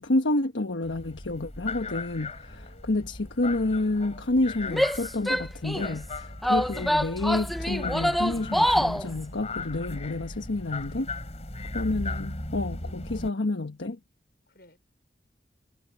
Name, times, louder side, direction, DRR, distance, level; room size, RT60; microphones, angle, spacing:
voice 1, 0.0-2.5 2.8-11.1 11.7-14.0, left 2 dB, 80° left, 1.2 m, -29 dB
sound 1, 0.8-13.3, left 2 dB, 35° left, 4.0 m, -37 dB
voice 2, 2.5-3.2 11.5-12.2 12.8-13.4 14.5-14.8, left 1 dB, 55° left, 5.3 m, -59 dB
Female speech woman speaking / Yell, 4.7-5.9 6.4-9.1, equal, ahead, 0.4 m, -25 dB
head